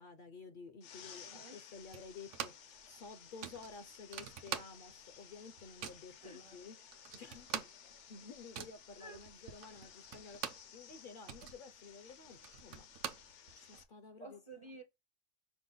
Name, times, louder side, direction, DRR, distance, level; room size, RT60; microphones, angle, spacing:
voice 1, 0.0-7.7 8.1-12.9 13.5-14.4, left 4 dB, 55° left, 0.6 m, -53 dB
sound 1, 0.8-13.8, left 8 dB, 75° left, 1.0 m, -57 dB
voice 2, 1.2-1.6 6.2-6.6 9.0-9.2 9.7-9.8 14.2-14.8, right 2 dB, 35° right, 0.5 m, -52 dB
sound 2, 1.9-2.8 3.0-3.1 3.4-5.1 5.4-6.1 6.6-6.7 6.9-10.7 11.1-13.8, right 8 dB, 80° right, 1.0 m, -45 dB
5.9 x 2.1 x 3.9 m
omnidirectional pair, 1.3 m